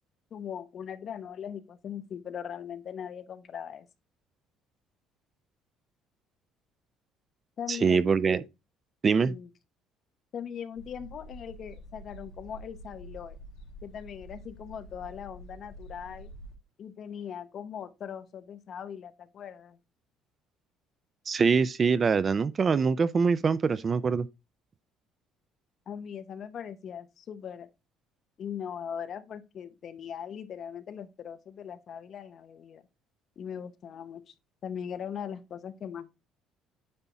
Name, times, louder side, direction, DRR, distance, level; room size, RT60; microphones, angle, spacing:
voice 1, 0.3-3.9 7.6-8.0 9.2-9.5 10.3-13.4 13.8-16.3 16.8-19.8 25.9-27.7 28.4-32.8 33.4-34.3 34.6-36.1, left 8 dB, 40° left, 0.8 m, -40 dB
voice 2, 7.7-8.4 9.0-9.3 21.3-24.3, right 5 dB, 25° right, 0.4 m, -24 dB
sound 1, 10.8-16.5, equal, 65° left, 3.2 m, -47 dB
9.6 x 3.6 x 4.0 m
cardioid pair, 160°, 0 cm